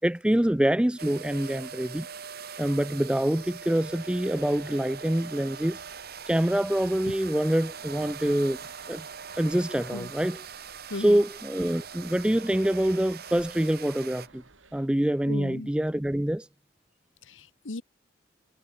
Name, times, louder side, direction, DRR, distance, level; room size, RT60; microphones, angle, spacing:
voice 1, 0.0-2.1 2.6-5.8 6.3-8.6 8.9-9.0 9.4-10.4 10.9-14.4 14.7-16.5, right 1 dB, 5° right, 0.4 m, -25 dB
sound 1, 1.0-14.3, right 6 dB, 55° right, 1.8 m, -42 dB
sound 2, 3.0-14.9, right 3 dB, 85° right, 3.3 m, -59 dB
voice 2, 10.9-11.2 15.3-15.7 17.3-17.8, left 2 dB, 80° left, 1.3 m, -36 dB
head